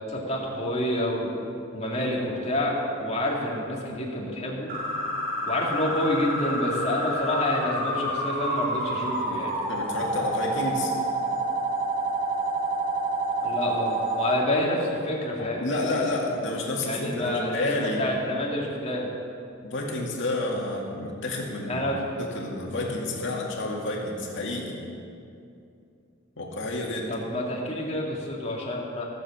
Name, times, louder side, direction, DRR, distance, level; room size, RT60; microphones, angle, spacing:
voice 1, 0.0-1.4 1.7-4.7 5.5-9.5 13.4-15.8 16.8-19.1 21.6-22.0 27.1-29.0, left 1 dB, 35° left, -2 dB, 2.3 m, -28 dB
sound 1, 4.7-14.3, right 1 dB, 45° right, 2.3 m, -28 dB
voice 2, 9.7-11.0 15.4-18.0 19.6-24.8 26.4-27.1, left 2 dB, 65° left, -1 dB, 2.2 m, -30 dB
15.5 x 7.5 x 7.2 m, 2.5 s
head